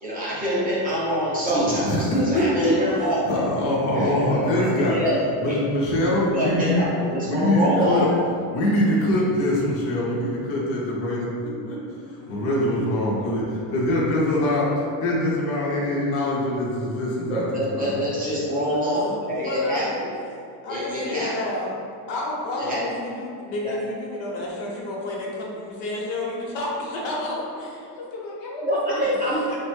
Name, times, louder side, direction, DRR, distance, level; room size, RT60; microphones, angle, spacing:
voice 1, 0.0-3.4 3.9-5.7 6.3-8.1 17.3-19.9 20.7-21.3 22.6-22.9 23.6-23.8 28.6-29.4, equal, 20° right, -8 dB, 0.5 m, -25 dB
voice 2, 1.7-2.7 3.0-5.0 5.4-6.9 7.3-8.0 8.5-11.8 12.0-18.0, left 1 dB, 30° left, -5 dB, 0.5 m, -23 dB
voice 3, 12.2-12.5 18.3-19.0 19.3-20.0 20.6-21.7 22.1-29.1 29.5-29.6, left 2 dB, 75° left, -3 dB, 0.9 m, -31 dB
3.2 x 2.1 x 3.1 m, 2.4 s
cardioid pair, 145°, 46 cm